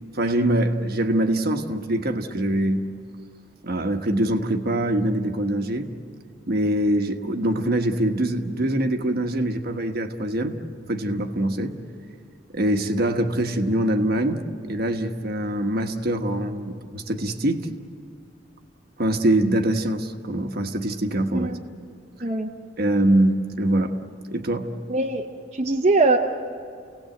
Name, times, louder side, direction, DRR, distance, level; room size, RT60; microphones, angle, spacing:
voice 1, 0.1-2.8 3.6-5.9 6.5-10.6 10.9-11.8 12.5-14.4 14.7-17.7 19.0-21.5 22.8-23.9 24.3-24.7, right 1 dB, 55° right, 6 dB, 1.3 m, -23 dB
voice 2, 24.9-25.3 25.5-26.2, right 3 dB, 35° right, 0 dB, 0.9 m, -21 dB
29.0 x 18.0 x 7.8 m, 2.3 s
head